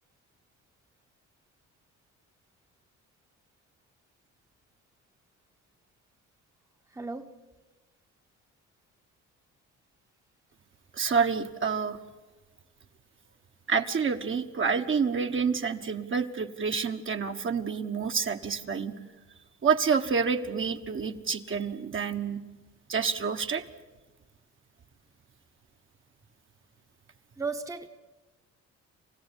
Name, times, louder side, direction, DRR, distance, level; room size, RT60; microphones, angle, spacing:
voice 1, 6.9-7.4 27.4-27.9, right 4 dB, 10° right, 6 dB, 1.1 m, -35 dB
voice 2, 10.9-12.0 13.7-18.9 19.6-22.4 22.9-23.6, right 5 dB, 40° right, 5 dB, 1.4 m, -28 dB
28.0 x 15.5 x 10.0 m, 1.2 s
cardioid pair, 90°, 30 cm